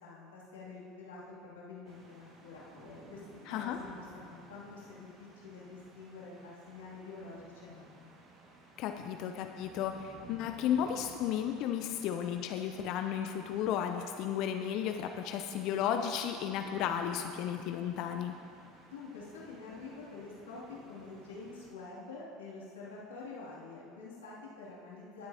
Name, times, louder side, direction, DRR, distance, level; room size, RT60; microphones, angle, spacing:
voice 1, 0.0-3.2 3.5-8.1 18.9-25.3, left 3 dB, 75° left, -7 dB, 2.6 m, -47 dB
sound 1, 1.8-21.7, right 2 dB, 40° right, 1.8 m, -56 dB
voice 2, 3.5-3.8 8.8-18.3, left 9 dB, 55° left, 6 dB, 0.6 m, -34 dB
19.5 x 7.8 x 2.8 m, 2.4 s
figure-of-eight pair, 70°, 0 cm